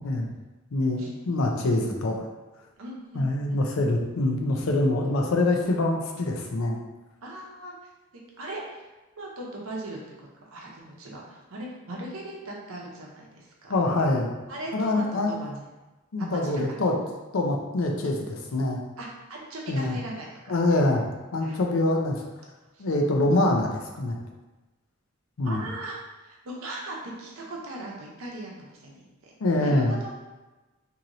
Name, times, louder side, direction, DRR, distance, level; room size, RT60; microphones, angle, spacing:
voice 1, 0.7-2.3 3.1-6.8 13.7-14.3 14.7-15.3 16.1-16.9 17.3-18.8 19.7-20.0 20.5-21.0 21.3-22.2 22.8-24.2 25.4-25.6 29.4-30.0, left 2 dB, 75° left, 2 dB, 0.5 m, -25 dB
voice 2, 2.8-3.6 7.2-8.9 9.2-13.8 14.5-15.5 16.2-16.8 19.0-20.6 21.4-21.6 22.7-22.8 25.4-30.2, right 1 dB, 70° right, -2 dB, 0.7 m, -39 dB
2.9 x 2.7 x 2.6 m, 1.1 s
head